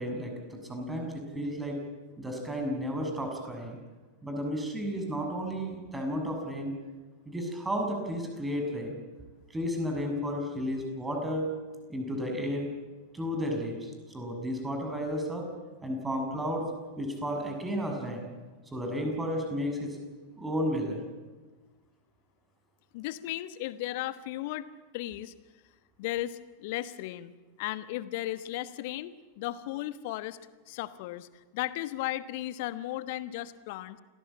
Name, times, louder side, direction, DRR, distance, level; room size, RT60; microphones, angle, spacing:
voice 1, 0.0-1.8 2.2-3.8 4.2-6.7 7.2-9.0 9.5-11.5 11.9-12.7 13.1-15.4 15.8-16.6 17.0-18.3 18.7-20.0 20.4-21.0, equal, 10° right, 3 dB, 6.7 m, -33 dB
voice 2, 22.9-24.7 24.9-25.3 26.0-27.3 27.6-30.4 30.7-34.0, left 15 dB, 50° left, 14 dB, 1.2 m, -35 dB
28.0 x 19.0 x 8.8 m, 1.3 s
figure-of-eight pair, 90°, 0 cm